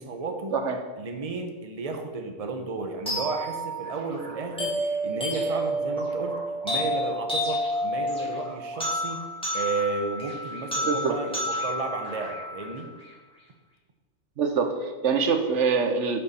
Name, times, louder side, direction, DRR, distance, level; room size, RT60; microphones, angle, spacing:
voice 1, 0.0-0.5 1.0-9.3 9.5-12.9, right 4 dB, 35° right, 5 dB, 1.0 m, -33 dB
sound 1, 3.1-13.1, equal, 5° left, 2.8 m, -30 dB
voice 2, 10.9-11.2 14.4-16.2, right 5 dB, 80° right, 7 dB, 1.2 m, -24 dB
10.5 x 6.9 x 4.3 m, 1.3 s
omnidirectional pair, 1.2 m